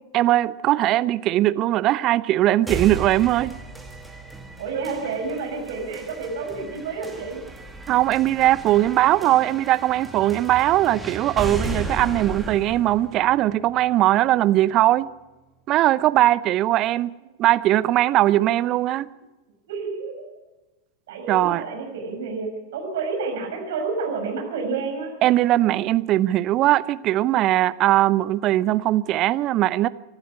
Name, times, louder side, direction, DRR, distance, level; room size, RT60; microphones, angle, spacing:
voice 1, 0.1-3.6 7.9-15.1 15.7-19.1 21.3-21.6 25.2-29.9, right 14 dB, 35° right, 0.7 m, -20 dB
sound 1, 2.7-14.6, right 2 dB, 5° right, 2.4 m, -35 dB
voice 2, 4.6-7.4 19.7-20.2 21.1-25.2, right 4 dB, 55° right, 6.2 m, -29 dB
24.5 x 12.5 x 8.7 m
figure-of-eight pair, 90°, 0 cm